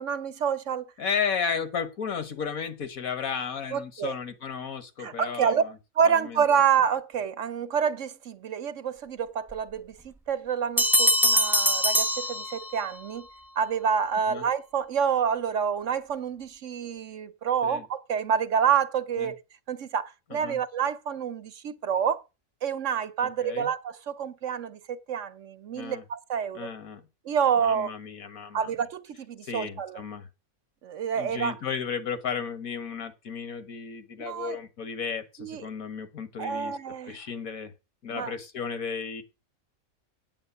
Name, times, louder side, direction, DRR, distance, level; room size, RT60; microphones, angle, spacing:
voice 1, 0.0-0.9 3.7-4.1 5.0-5.6 6.0-13.3 13.6-19.4 19.7-22.2 22.6-26.7 27.2-27.9 28.5-30.0 30.8-31.6 34.2-34.6 35.4-35.7 36.4-37.2 38.1-38.3, right 7 dB, 65° right, 1.2 m, -28 dB
voice 2, 1.0-5.7 6.0-6.4 14.3-14.4 17.6-17.8 19.2-19.3 20.3-20.6 23.4-23.7 25.7-26.0 26.6-27.1 27.6-28.7 29.4-30.3 31.2-36.8 37.1-37.7 38.0-39.2, left 6 dB, 85° left, 1.8 m, -34 dB
sound 1, 10.8-13.0, equal, ahead, 0.6 m, -23 dB
8.8 x 7.9 x 6.8 m
omnidirectional pair, 1.4 m